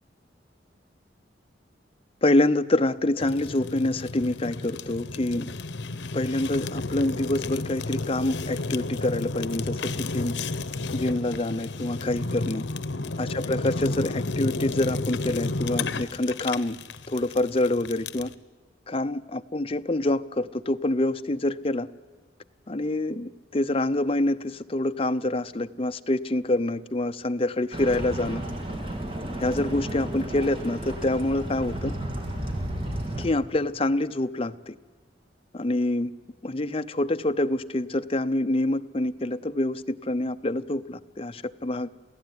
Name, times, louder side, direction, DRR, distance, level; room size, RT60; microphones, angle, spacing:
voice 1, 2.2-5.5 6.1-10.4 10.9-12.6 13.2-16.8 17.1-18.3 18.9-21.9 22.7-28.4 29.4-31.9 33.2-34.7 35.5-36.1 36.4-41.9, left 1 dB, 30° left, 10 dB, 0.7 m, -26 dB
Fire, 3.2-18.3, left 3 dB, 80° left, 0.9 m, -32 dB
sound 1, 27.7-33.3, right 1 dB, 30° right, 3.2 m, -33 dB
28.5 x 16.0 x 9.6 m, 1.4 s
head